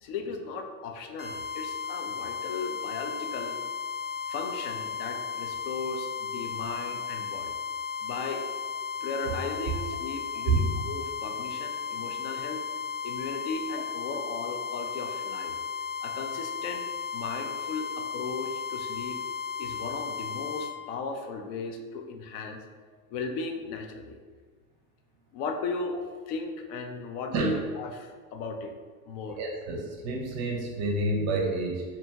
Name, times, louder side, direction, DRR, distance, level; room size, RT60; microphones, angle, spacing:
voice 1, 0.0-3.6 4.3-7.5 8.0-8.4 9.0-12.6 13.0-15.6 16.0-16.9 17.1-19.2 19.6-22.6 23.1-24.2 25.3-26.0 26.3-28.7 29.1-29.4, left 4 dB, 70° left, 4 dB, 0.5 m, -36 dB
sound 1, 1.2-20.7, left 6 dB, 30° left, 0.8 m, -35 dB
voice 2, 29.4-31.8, right 2 dB, 35° right, 0 dB, 0.5 m, -28 dB
2.8 x 2.6 x 2.2 m, 1.5 s
supercardioid pair, 115°, 47 cm